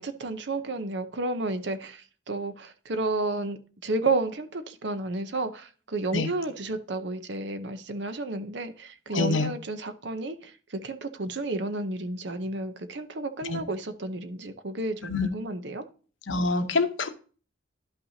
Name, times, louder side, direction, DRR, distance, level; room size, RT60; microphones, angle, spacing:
voice 1, 0.0-15.8, right 2 dB, 60° right, 0.7 m, -31 dB
voice 2, 9.1-9.5 13.5-13.6 15.1-15.3 16.3-17.1, left 3 dB, 75° left, 0.9 m, -25 dB
11.0 x 5.7 x 2.7 m
head